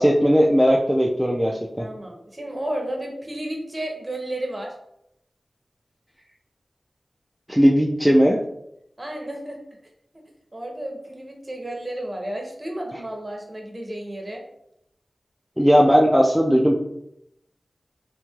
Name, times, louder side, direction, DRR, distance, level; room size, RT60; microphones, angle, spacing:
voice 1, 0.0-1.9 7.5-8.4 15.6-16.8, equal, ahead, -2 dB, 0.3 m, -17 dB
voice 2, 1.8-4.7 9.0-9.6 10.5-14.4, right 1 dB, 25° right, 1 dB, 0.7 m, -32 dB
3.0 x 2.9 x 2.3 m, 0.77 s
wide cardioid pair, 75°, 0 cm